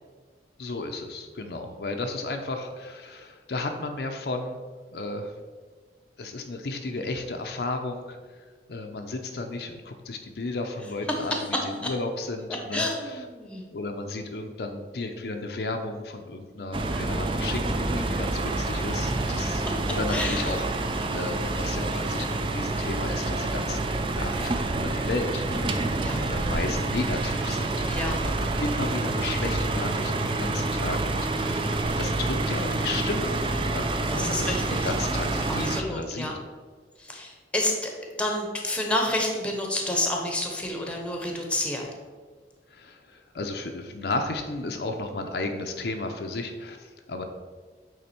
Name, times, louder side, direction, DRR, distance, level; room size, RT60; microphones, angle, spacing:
voice 1, 0.6-4.6 4.9-5.3 6.2-8.4 8.7-13.2 13.7-27.9 28.1-33.3 33.7-33.9 34.2-34.5 34.8-36.3 42.7-47.2, left 2 dB, 65° left, 4 dB, 0.6 m, -33 dB
voice 2, 12.7-13.6 20.1-20.5 25.9-26.3 27.9-28.2 34.1-34.9 35.7-36.3 37.0-37.9 38.2-41.9, left 1 dB, 5° left, 1 dB, 0.9 m, -29 dB
sound 1, 16.7-35.8, right 2 dB, 30° right, 0.4 m, -28 dB
8.5 x 3.5 x 4.3 m, 1.5 s
head